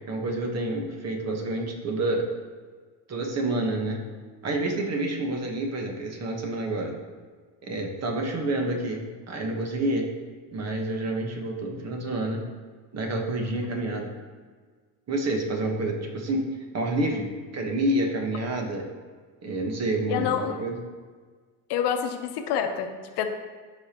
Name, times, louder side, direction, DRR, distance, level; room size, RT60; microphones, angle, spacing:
voice 1, 0.1-2.3 3.1-4.0 4.4-6.9 7.7-9.0 9.3-10.1 10.5-12.4 12.9-14.1 15.1-16.5 16.7-18.8 19.4-20.8, right 1 dB, 35° right, 2 dB, 1.3 m, -28 dB
voice 2, 20.1-20.6 21.7-22.9 23.2-23.3, left 8 dB, 65° left, 6 dB, 1.0 m, -27 dB
13.5 x 5.3 x 3.0 m, 1.5 s
cardioid pair, 130°, 44 cm